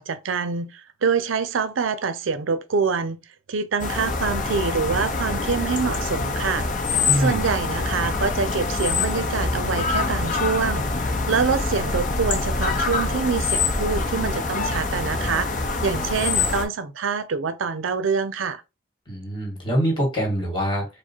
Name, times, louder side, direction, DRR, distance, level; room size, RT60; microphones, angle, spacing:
voice 1, 0.0-3.2 3.5-6.7 7.2-15.5 15.8-18.6, right 5 dB, 85° right, 0.5 m, -25 dB
sound 1, 3.8-16.7, left 3 dB, 40° left, 0.7 m, -25 dB
voice 2, 7.1-7.4 19.1-20.9, equal, 25° left, 2.0 m, -24 dB
4.7 x 2.0 x 4.4 m
head